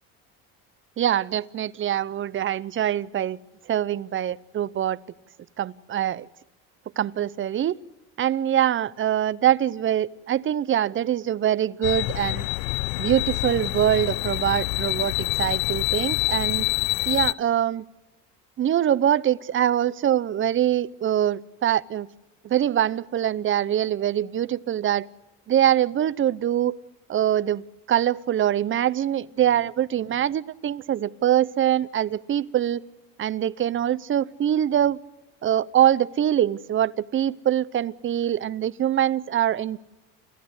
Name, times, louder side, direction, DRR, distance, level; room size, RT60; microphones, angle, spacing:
voice 1, 1.0-3.4 3.7-5.0 5.6-6.3 7.0-7.8 8.2-12.5 13.0-16.7 17.1-17.8 18.6-22.1 22.4-25.1 25.5-26.7 27.1-32.8 33.2-35.0 35.4-39.8, right 11 dB, 35° right, 20 dB, 0.7 m, -23 dB
sound 1, 11.8-17.3, left 23 dB, 80° left, 0.7 m, -26 dB
28.5 x 15.0 x 8.1 m, 1.1 s
supercardioid pair, 105°, 37 cm